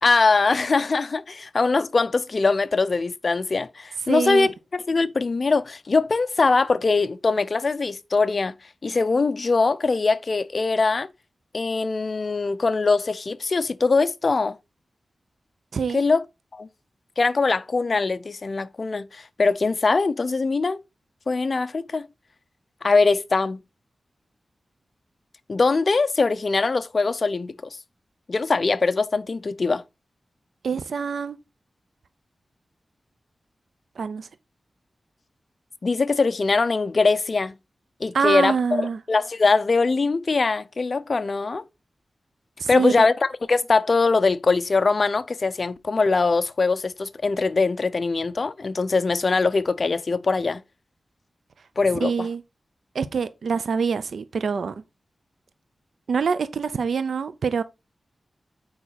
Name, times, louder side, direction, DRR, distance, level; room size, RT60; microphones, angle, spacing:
voice 1, 0.0-4.5 4.9-8.5 8.8-11.1 11.5-14.6 15.9-16.2 16.5-16.7 17.2-20.8 21.3-22.1 22.8-23.6 25.5-27.5 28.3-29.8 35.8-37.5 38.0-38.5 39.1-41.6 42.7-50.6 51.8-52.3, left 4 dB, 50° left, 0.7 m, -22 dB
voice 2, 4.1-4.5 15.7-16.0 30.6-31.4 34.0-34.3 38.1-39.0 42.6-43.1 52.0-52.4 52.9-54.7 56.1-57.6, right 6 dB, 85° right, 0.6 m, -25 dB
8.7 x 4.8 x 4.0 m
wide cardioid pair, 80°, 0 cm